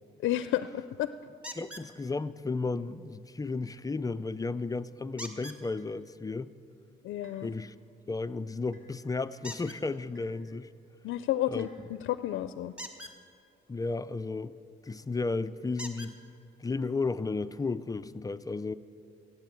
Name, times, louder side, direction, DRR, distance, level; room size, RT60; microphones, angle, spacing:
voice 1, 0.2-1.1 7.0-7.5 11.0-12.7, left 13 dB, 75° left, 12 dB, 0.5 m, -31 dB
sound 1, 1.4-1.9 5.2-5.6 9.4-9.8 12.7-13.2 14.8-14.9 15.8-16.1 17.1-17.2 17.7-17.8, left 1 dB, 5° right, 1.4 m, -42 dB
voice 2, 1.5-6.5 7.4-7.7 8.1-10.7 11.5-11.7 13.7-14.5 14.8-16.2 16.6-18.7, left 3 dB, 20° left, 14 dB, 0.4 m, -33 dB
sound 2, 5.8-6.0 7.2-7.5 8.7-8.9 10.1-10.5 11.6-11.8, right 1 dB, 75° right, 3.8 m, -59 dB
15.0 x 8.6 x 9.0 m, 2.4 s
cardioid pair, 90°, 20 cm